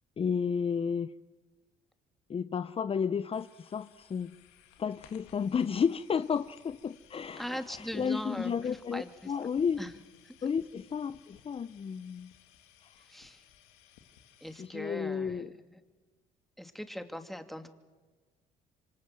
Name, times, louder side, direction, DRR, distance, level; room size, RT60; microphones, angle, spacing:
voice 1, 0.2-1.1 2.3-4.3 4.8-9.8 10.4-12.3 14.6-15.5, left 6 dB, 35° left, 13 dB, 0.8 m, -32 dB
sound 1, 3.3-14.7, left 10 dB, 90° left, 2.5 m, -60 dB
voice 2, 7.4-9.3 9.8-9.9 10.2-10.5 13.0-13.5 14.4-15.8 16.6-17.7, equal, ahead, 7 dB, 2.7 m, -41 dB
26.5 x 25.5 x 7.7 m, 1.4 s
supercardioid pair, 70°, 16 cm